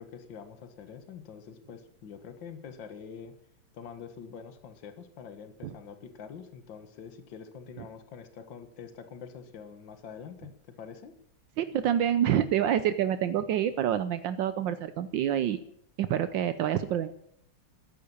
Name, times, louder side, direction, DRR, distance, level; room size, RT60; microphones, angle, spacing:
voice 1, 0.0-3.3 3.7-11.1, left 6 dB, 70° left, 8 dB, 2.1 m, -45 dB
voice 2, 11.6-15.6 16.0-17.1, right 10 dB, 75° right, 12 dB, 1.4 m, -27 dB
13.5 x 10.5 x 8.6 m, 0.70 s
omnidirectional pair, 2.1 m